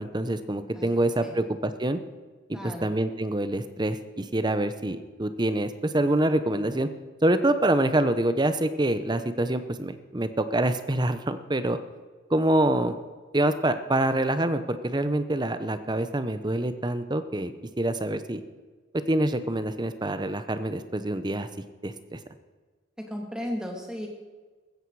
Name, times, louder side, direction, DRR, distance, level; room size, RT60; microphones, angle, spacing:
voice 1, 0.0-2.0 2.8-6.9 7.2-11.8 12.3-12.9 13.3-17.5 17.8-18.4 19.1-21.5 21.8-22.2, right 1 dB, 20° right, 11 dB, 0.8 m, -26 dB
voice 2, 0.7-1.4 2.5-2.9 23.0-24.1, equal, 5° right, 0 dB, 2.4 m, -35 dB
15.5 x 14.5 x 4.8 m, 1.4 s
head